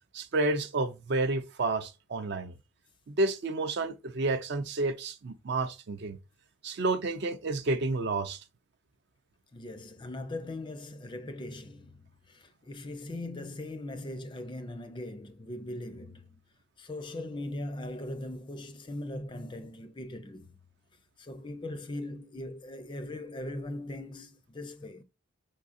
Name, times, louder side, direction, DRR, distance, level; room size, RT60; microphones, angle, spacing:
voice 1, 0.1-2.5 3.1-6.2 6.6-8.4, right 2 dB, 50° right, 0.4 m, -30 dB
voice 2, 9.5-16.4 16.8-20.6 21.2-25.0, left 1 dB, 20° left, 0.4 m, -40 dB
5.5 x 3.6 x 2.5 m
head